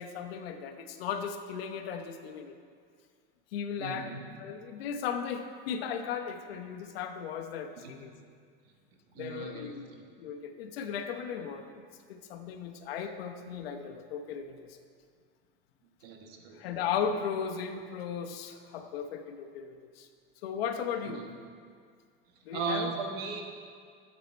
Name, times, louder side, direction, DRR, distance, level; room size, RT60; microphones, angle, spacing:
voice 1, 0.0-2.6 3.5-4.1 4.4-8.1 9.2-9.9 10.2-11.8 12.1-14.8 16.5-20.1 20.4-21.3 22.4-22.9, left 7 dB, 85° left, 7 dB, 1.0 m, -36 dB
voice 2, 3.8-4.2 7.8-7.9 9.1-10.0 16.0-16.6 21.0-21.2 22.5-23.4, right 4 dB, 75° right, 2 dB, 1.7 m, -37 dB
12.5 x 7.4 x 4.4 m, 2.1 s
supercardioid pair, 145°, 29 cm